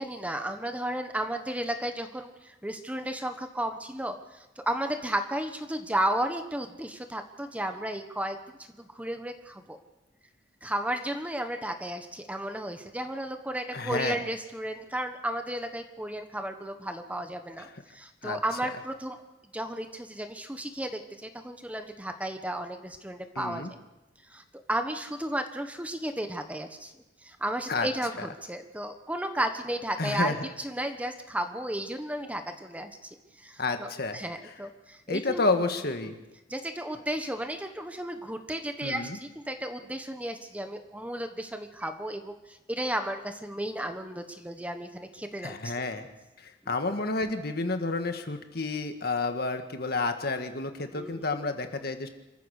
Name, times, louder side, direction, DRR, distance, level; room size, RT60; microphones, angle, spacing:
voice 1, 0.0-8.4 8.8-9.8 10.6-19.2 19.5-23.7 24.3-24.4 24.7-26.9 27.2-32.9 33.4-35.4 36.5-45.7 50.9-51.2, right 1 dB, 10° right, 7 dB, 1.2 m, -33 dB
voice 2, 13.7-14.2 17.6-17.8 18.2-18.4 23.4-23.7 27.7-27.9 28.2-28.3 30.0-30.5 33.6-34.5 35.1-36.2 38.8-39.2 45.4-46.1 46.4-52.1, left 3 dB, 55° left, 7 dB, 1.8 m, -30 dB
27.0 x 14.5 x 6.6 m, 1.1 s
head